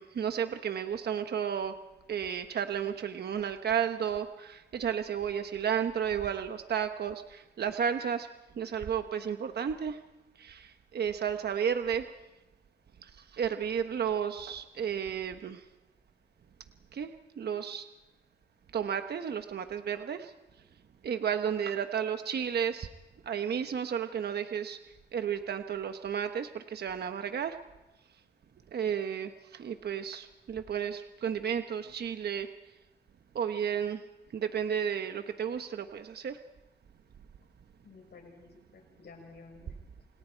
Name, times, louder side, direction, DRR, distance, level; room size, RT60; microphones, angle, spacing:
voice 1, 0.0-1.7 2.1-8.3 8.6-10.0 10.4-12.1 13.0-15.6 16.9-17.1 17.4-17.8 18.7-20.3 21.0-22.9 23.3-24.8 25.1-27.6 28.7-32.5 33.3-34.0 34.3-36.4, right 8 dB, 65° right, 8 dB, 1.1 m, -32 dB
voice 2, 37.8-40.1, left 4 dB, 70° left, 1 dB, 7.6 m, -53 dB
28.5 x 28.5 x 4.6 m, 1.1 s
wide cardioid pair, 165°, 18 cm